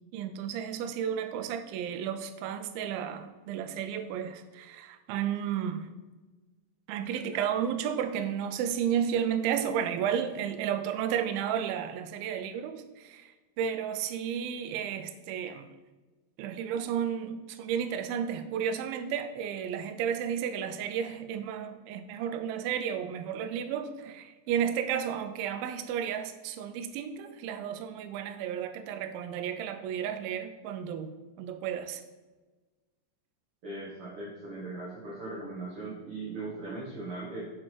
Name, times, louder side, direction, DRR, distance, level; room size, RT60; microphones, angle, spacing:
voice 1, 0.1-5.9 6.9-15.7 16.4-32.0, right 8 dB, 90° right, 8 dB, 2.1 m, -32 dB
voice 2, 33.6-37.5, right 2 dB, 75° right, -7 dB, 1.3 m, -39 dB
6.2 x 4.5 x 4.4 m, 1.2 s
omnidirectional pair, 4.8 m